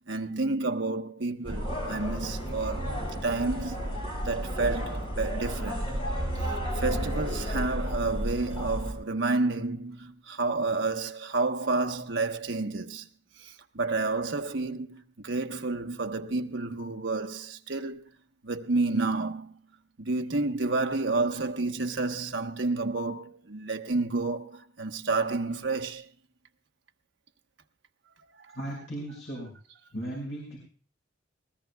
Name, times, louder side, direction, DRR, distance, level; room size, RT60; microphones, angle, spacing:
voice 1, 0.1-5.9 6.4-13.1 13.4-18.1 18.4-19.6 20.0-26.1 28.5-28.9, right 3 dB, 65° right, 1.1 m, -30 dB
sound 1, 1.4-8.9, equal, 30° left, 6.0 m, -32 dB
voice 2, 28.5-29.5 29.9-30.6, right 1 dB, 60° left, 5.6 m, -36 dB
21.0 x 19.5 x 2.3 m
head